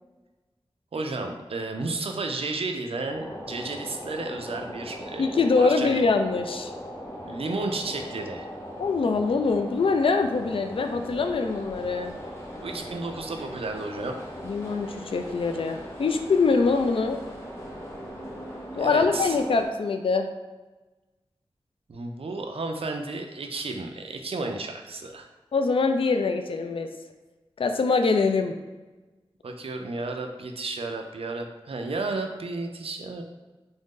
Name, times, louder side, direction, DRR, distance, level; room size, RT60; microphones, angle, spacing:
voice 1, 0.9-6.0 7.2-8.5 12.6-14.2 18.8-19.4 21.9-25.3 29.4-33.2, right 3 dB, 75° right, 4 dB, 0.5 m, -32 dB
sound 1, 3.1-19.7, equal, 25° left, 1.0 m, -39 dB
voice 2, 5.2-6.7 8.8-12.2 14.4-17.2 18.8-20.3 25.5-26.9 27.6-28.5, left 4 dB, 65° left, 6 dB, 0.3 m, -24 dB
3.6 x 2.6 x 3.6 m, 1.2 s
wide cardioid pair, 70°, 10 cm